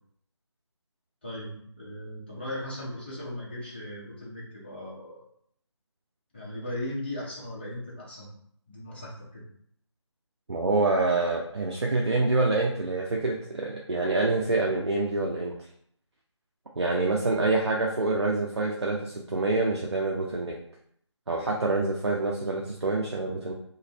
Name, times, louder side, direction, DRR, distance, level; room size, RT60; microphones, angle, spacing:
voice 1, 1.2-5.2 6.3-8.3 8.7-9.4 17.6-17.7, left 1 dB, 20° left, -5 dB, 0.6 m, -38 dB
voice 2, 10.5-15.5 16.8-20.5 21.3-23.5, right 3 dB, 65° right, -2 dB, 0.5 m, -26 dB
2.6 x 2.5 x 3.0 m, 0.66 s
figure-of-eight pair, 160°, 15 cm